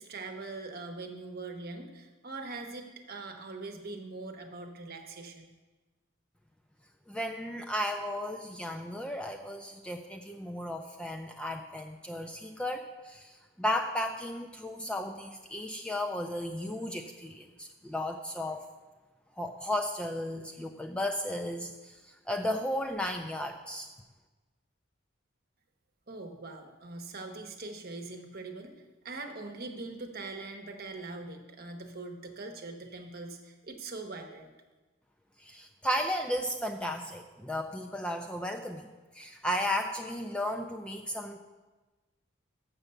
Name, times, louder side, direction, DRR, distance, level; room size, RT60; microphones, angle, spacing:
voice 1, 0.0-5.5 26.1-28.7 29.0-34.5, right 3 dB, 50° right, 4 dB, 0.9 m, -42 dB
voice 2, 7.1-18.6 19.4-23.9 35.4-41.4, left 1 dB, 5° left, 4 dB, 0.3 m, -34 dB
7.1 x 6.6 x 6.7 m, 1.2 s
head